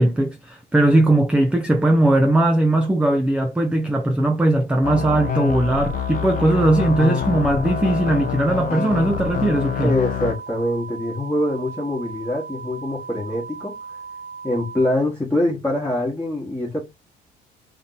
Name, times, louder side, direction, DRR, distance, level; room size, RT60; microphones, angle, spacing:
voice 1, 0.0-10.0, right 1 dB, 5° right, 0.5 m, -19 dB
sound 1, 4.8-10.3, left 9 dB, 55° left, 0.5 m, -26 dB
sound 2, 4.9-14.9, right 5 dB, 85° right, 0.6 m, -37 dB
voice 2, 9.8-13.7 14.4-16.8, left 1 dB, 10° left, 1.2 m, -24 dB
3.5 x 2.7 x 3.9 m
cardioid pair, 110°, 17 cm